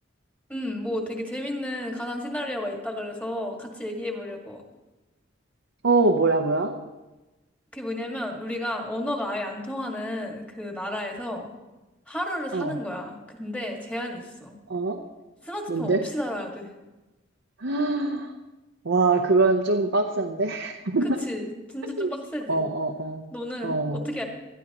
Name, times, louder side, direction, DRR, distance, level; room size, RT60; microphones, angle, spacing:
voice 1, 0.5-4.6 7.7-11.5 12.1-14.5 15.4-16.7 21.0-22.6 23.3-24.2, left 1 dB, 5° left, 1 dB, 1.9 m, -32 dB
voice 2, 5.8-6.7 12.5-12.8 14.7-15.0 15.7-16.0 17.6-18.3 18.8-21.2 22.0-22.1 22.5-23.2 23.6-24.1, right 3 dB, 80° right, 2 dB, 0.9 m, -23 dB
20.5 x 13.0 x 3.0 m, 1.1 s
head